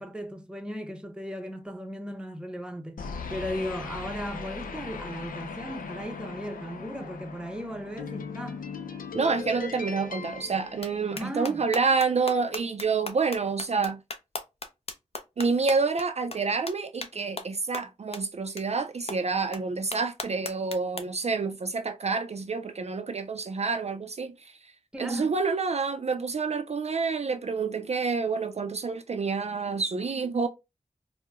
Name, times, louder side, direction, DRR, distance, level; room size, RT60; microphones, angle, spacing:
voice 1, 0.0-8.6 11.1-11.6 24.9-25.4, equal, 5° right, 0.6 m, -36 dB
sound 1, 3.0-11.5, left 5 dB, 90° left, 0.4 m, -39 dB
voice 2, 9.1-14.0 15.4-24.5 25.0-30.5, right 4 dB, 50° right, 0.4 m, -28 dB
sound 2, 10.8-10.9 11.2-16.1 16.3-16.4 16.7-16.8 17.0-17.1 17.4-17.5 17.7-17.8 18.1-18.2 18.6-18.7 19.1-19.2 19.5-19.6 19.9-21.0, left 3 dB, 45° left, 0.6 m, -36 dB
4.5 x 2.0 x 2.4 m
wide cardioid pair, 55°, 14 cm